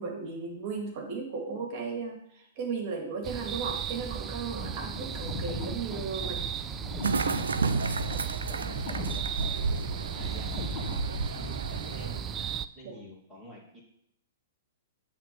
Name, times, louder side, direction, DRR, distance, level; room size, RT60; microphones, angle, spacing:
voice 1, 0.0-6.4 12.8-13.0, right 4 dB, 45° right, 2 dB, 2.1 m, -35 dB
sound 1, 3.2-12.7, right 8 dB, 25° right, 0.4 m, -36 dB
sound 2, 4.4-11.5, left 2 dB, 35° left, 1.8 m, -39 dB
voice 2, 4.7-5.0 7.5-8.1 8.4-9.7 10.1-11.0 11.4-13.8, left 1 dB, 5° right, -5 dB, 2.4 m, -49 dB
sound 3, 7.0-12.2, right 4 dB, 85° right, 0.5 m, -32 dB
8.8 x 3.7 x 6.7 m, 0.74 s
hypercardioid pair, 120°, 0 cm